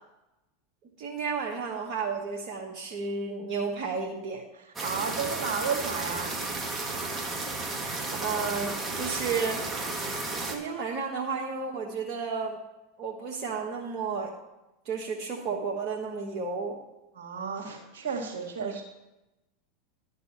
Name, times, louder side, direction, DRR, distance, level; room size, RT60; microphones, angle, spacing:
voice 1, 1.0-4.5 8.2-9.7 10.2-12.6 13.0-14.3 14.8-16.8 18.6-18.7, right 5 dB, 45° right, -1 dB, 1.3 m, -32 dB
sound 1, 4.8-10.6, right 2 dB, 20° right, 1.5 m, -33 dB
voice 2, 4.8-6.4 17.2-18.8, right 6 dB, 70° right, 3 dB, 1.8 m, -32 dB
10.5 x 5.5 x 5.7 m, 0.98 s
hypercardioid pair, 85°, 0 cm